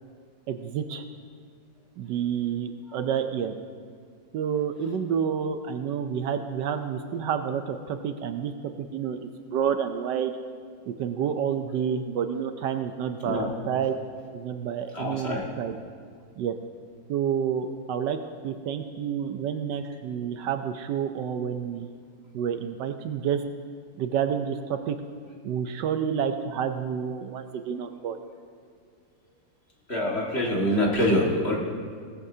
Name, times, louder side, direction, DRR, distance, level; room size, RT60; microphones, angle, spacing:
voice 1, 0.5-1.0 2.0-3.5 4.3-8.5 8.8-10.3 10.9-13.9 14.3-15.8 16.4-16.5 17.1-21.9 22.3-23.4 24.0-25.0 25.4-28.2, right 8 dB, 75° right, 8 dB, 1.2 m, -29 dB
voice 2, 14.9-15.5 29.9-31.6, left 1 dB, 35° left, -3 dB, 2.0 m, -25 dB
18.5 x 14.5 x 2.7 m, 2.1 s
omnidirectional pair, 2.0 m